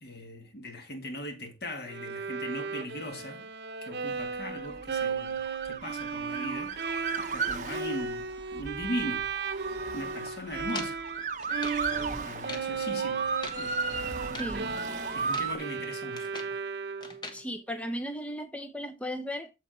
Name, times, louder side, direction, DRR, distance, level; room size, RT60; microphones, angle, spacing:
voice 1, 0.0-3.5 3.8-6.7 7.2-9.3 9.9-11.0 12.2-14.5 15.1-16.3, left 1 dB, 65° left, 2.2 m, -39 dB
Bowed string instrument, 1.9-11.2 11.5-17.3, right 5 dB, 75° right, 0.8 m, -35 dB
Motor vehicle (road) / Siren, 4.4-15.6, right 4 dB, 45° right, 1.0 m, -36 dB
sound 1, 10.7-11.9 12.3-12.7 13.2-13.7 14.1-14.6 15.1-15.6 15.9-16.6 17.0-17.4, left 2 dB, 25° left, 1.3 m, -43 dB
voice 2, 14.2-14.7 17.3-19.5, equal, 10° left, 0.7 m, -36 dB
7.5 x 7.3 x 4.4 m
head